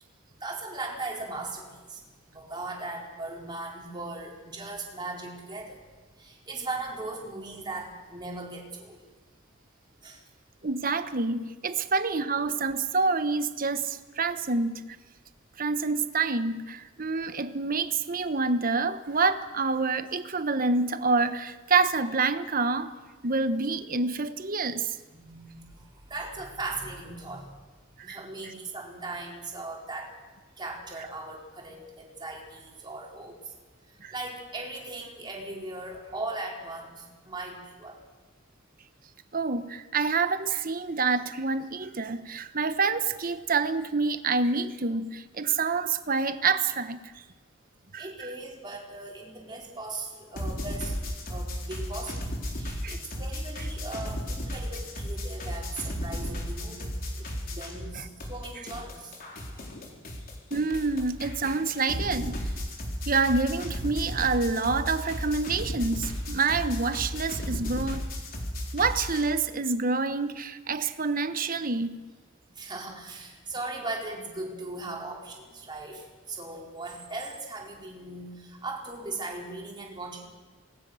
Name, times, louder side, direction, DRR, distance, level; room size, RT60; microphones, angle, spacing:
voice 1, 0.4-2.0 2.3-5.8 6.2-9.0 10.0-10.2 11.8-11.9 25.1-27.6 28.0-30.1 30.6-33.4 34.1-38.0 48.0-50.9 51.3-59.1 59.5-59.7 72.5-80.3, right 2 dB, 20° right, -2 dB, 4.5 m, -38 dB
voice 2, 10.6-14.8 15.6-22.9 23.2-25.0 28.0-28.2 34.0-34.1 39.3-47.0 47.9-48.0 52.8-53.0 57.9-58.0 60.5-62.4 63.1-68.0 68.7-72.0, right 4 dB, 45° right, 11 dB, 1.1 m, -27 dB
sound 1, 50.4-57.9 58.2-69.2, equal, 45° left, 4.2 m, -34 dB
27.0 x 20.0 x 6.4 m, 1.3 s
head